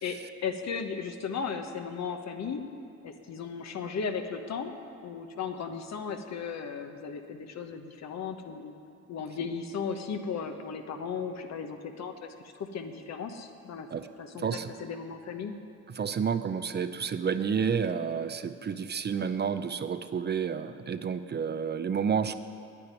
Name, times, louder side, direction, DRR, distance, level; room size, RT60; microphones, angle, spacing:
voice 1, 0.0-2.7 3.0-4.7 5.0-8.7 9.1-13.9 14.2-15.5, left 6 dB, 60° left, 6 dB, 1.2 m, -36 dB
voice 2, 14.3-14.7 16.0-22.3, right 6 dB, 35° right, 10 dB, 0.6 m, -30 dB
9.8 x 9.1 x 9.8 m, 2.5 s
cardioid pair, 90°, 30 cm